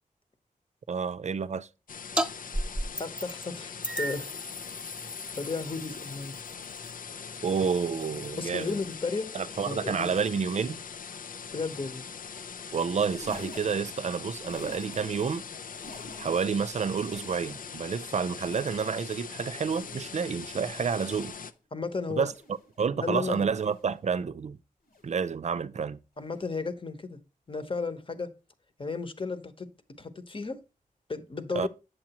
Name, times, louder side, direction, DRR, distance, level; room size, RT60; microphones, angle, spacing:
voice 1, 0.9-1.7 7.4-8.8 9.3-10.8 12.7-15.4 16.2-21.4 22.2-22.3 22.8-24.6 25.0-26.0 31.5-31.7, right 6 dB, 50° right, 0.5 m, -29 dB
sound 1, 1.9-21.5, left 6 dB, 70° left, 0.6 m, -42 dB
sound 2, 2.2-2.3 2.5-3.4 3.8-8.9, right 1 dB, 5° right, 1.1 m, -36 dB
voice 2, 3.0-4.3 5.4-6.3 8.4-9.3 9.6-10.1 11.5-12.0 21.7-22.3 22.9-23.5 26.2-27.2 27.5-28.3 28.8-29.7 30.0-30.6 31.1-31.7, left 4 dB, 35° left, 1.1 m, -34 dB
sound 3, 12.9-15.3 15.6-16.6 16.9-17.9 18.3-19.1 19.6-20.3 20.9-21.5 22.2-22.8 23.5-24.1 24.9-25.3 26.2-26.5 27.5-27.7 28.9-29.0, left 1 dB, 90° left, 2.4 m, -49 dB
7.9 x 7.4 x 2.9 m
cardioid pair, 65°, 15 cm